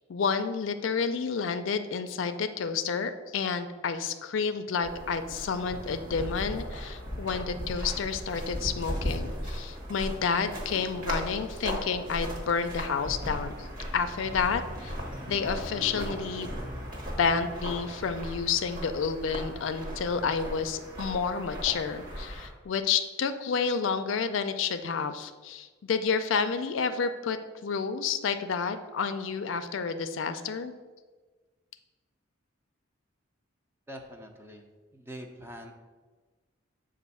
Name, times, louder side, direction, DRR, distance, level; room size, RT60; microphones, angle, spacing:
voice 1, 0.1-13.7 13.9-15.0 15.3-16.5 17.2-27.4 27.6-30.7, left 5 dB, 70° left, 9 dB, 0.4 m, -30 dB
sound 1, 4.8-22.5, equal, 50° right, 1.3 m, -37 dB
voice 2, 33.9-35.7, equal, 10° right, 3 dB, 0.5 m, -44 dB
7.1 x 2.5 x 5.4 m, 1.3 s
head